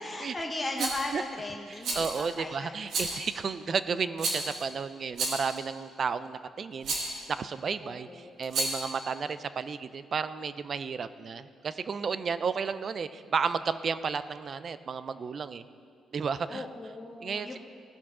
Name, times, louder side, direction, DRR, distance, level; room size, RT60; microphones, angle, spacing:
voice 1, 0.0-3.2 7.8-8.3 16.5-17.6, left 2 dB, 15° left, 0 dB, 0.8 m, -37 dB
voice 2, 0.8-1.2 1.7-15.6 16.1-16.7 17.2-17.6, right 5 dB, 50° right, 13 dB, 0.4 m, -33 dB
Rattle, 0.8-1.1 1.8-2.3 2.9-3.3 4.2-4.6 5.1-5.6 6.8-7.2 8.4-8.9, right 3 dB, 70° right, 1.7 m, -31 dB
15.5 x 5.7 x 3.7 m, 2.3 s
cardioid pair, 90°, 0 cm